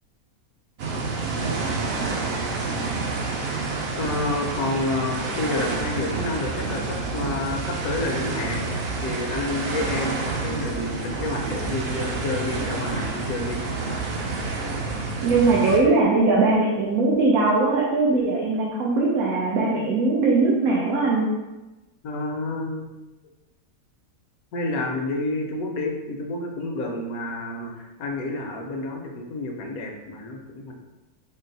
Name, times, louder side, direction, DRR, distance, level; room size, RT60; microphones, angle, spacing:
sound 1, 0.8-15.8, right 3 dB, 60° right, 0.6 m, -28 dB
voice 1, 4.0-13.6 22.0-22.9 24.5-30.7, left 2 dB, 80° left, 1 dB, 1.1 m, -29 dB
voice 2, 15.2-21.3, right 3 dB, 80° right, -4 dB, 1.1 m, -20 dB
4.4 x 2.1 x 3.9 m, 1.1 s
omnidirectional pair, 1.5 m